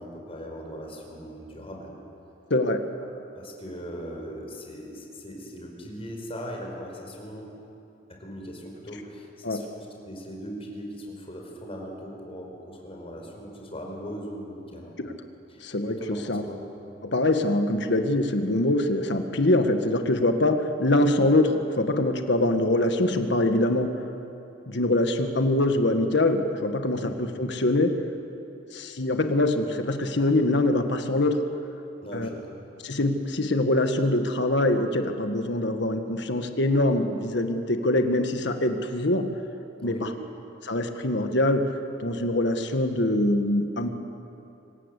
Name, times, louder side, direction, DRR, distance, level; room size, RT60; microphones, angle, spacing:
voice 1, 0.0-1.9 3.3-7.5 8.2-14.9 15.5-15.6 15.9-16.6 26.9-27.2 32.0-32.6 39.8-40.1, equal, 30° left, 0 dB, 5.1 m, -39 dB
voice 2, 2.5-2.8 9.4-9.6 15.0-15.1 15.6-16.0 16.3-16.4 17.0-23.9 24.7-28.0 28.7-31.4 32.1-32.3 32.8-39.3 39.8-40.1 40.6-41.6 42.0-43.9, left 1 dB, 65° left, 6 dB, 1.6 m, -24 dB
26.0 x 19.0 x 8.3 m, 2.9 s
head